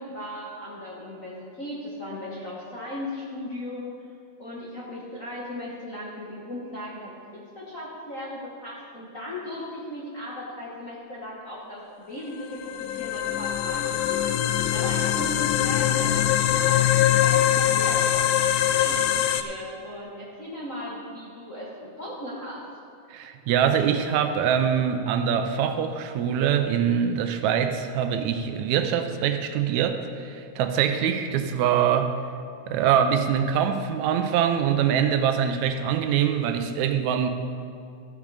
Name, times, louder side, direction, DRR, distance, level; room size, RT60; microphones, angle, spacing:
voice 1, 0.0-3.9 4.4-16.8 17.1-22.6, left 1 dB, 45° left, -6 dB, 1.1 m, -37 dB
sound 1, 12.4-19.4, left 11 dB, 80° left, 1.9 m, -23 dB
voice 2, 23.1-32.2 32.7-37.3, right 8 dB, 80° right, 7 dB, 1.9 m, -24 dB
14.0 x 7.3 x 4.8 m, 2.4 s
omnidirectional pair, 3.4 m